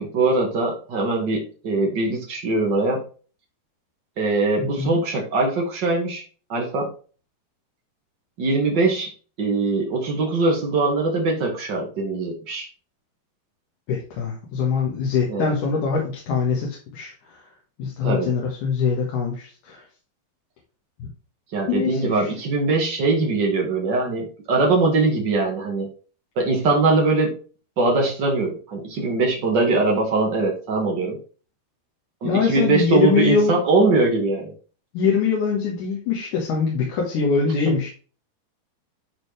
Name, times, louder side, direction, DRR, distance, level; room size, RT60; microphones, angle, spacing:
voice 1, 0.0-3.0 4.2-6.2 6.5-6.9 8.4-9.1 9.4-12.7 15.3-15.5 18.0-18.3 21.5-25.9 26.3-27.4 27.8-31.2 32.2-34.5, right 3 dB, 80° right, 0 dB, 1.0 m, -22 dB
voice 2, 4.6-5.0 13.9-17.4 17.8-19.9 21.0-21.1 21.7-22.3 32.2-33.6 34.9-37.9, left 5 dB, 60° left, -2 dB, 2.6 m, -23 dB
11.0 x 4.0 x 3.3 m, 0.38 s
omnidirectional pair, 4.6 m